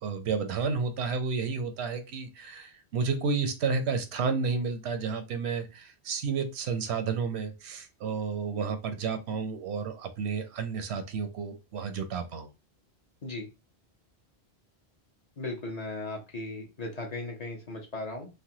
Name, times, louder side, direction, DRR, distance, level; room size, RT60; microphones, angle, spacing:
voice 1, 0.0-12.5, right 5 dB, 85° right, 8 dB, 0.8 m, -31 dB
voice 2, 15.4-18.3, left 2 dB, 45° left, 0 dB, 0.7 m, -37 dB
3.2 x 2.1 x 2.7 m, 0.27 s
omnidirectional pair, 1.1 m